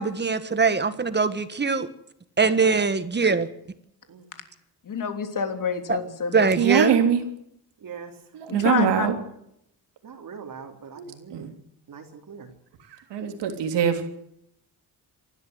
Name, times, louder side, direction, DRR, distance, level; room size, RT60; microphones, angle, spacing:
voice 1, 0.0-1.9 2.4-3.5 5.9-6.0 6.3-7.0, right 4 dB, 25° right, 12 dB, 1.6 m, -22 dB
voice 2, 4.9-6.5 8.5-9.1, left 6 dB, 50° left, 7 dB, 3.2 m, -27 dB
voice 3, 6.6-7.2 8.3-9.2 11.0-11.1 11.3-11.5 13.1-14.0, right 8 dB, 90° right, 6 dB, 3.3 m, -22 dB
voice 4, 7.8-8.1 10.0-11.5 11.9-12.5, right 6 dB, 55° right, 3 dB, 3.3 m, -42 dB
26.0 x 12.5 x 8.0 m, 0.76 s
cardioid pair, 115°, 41 cm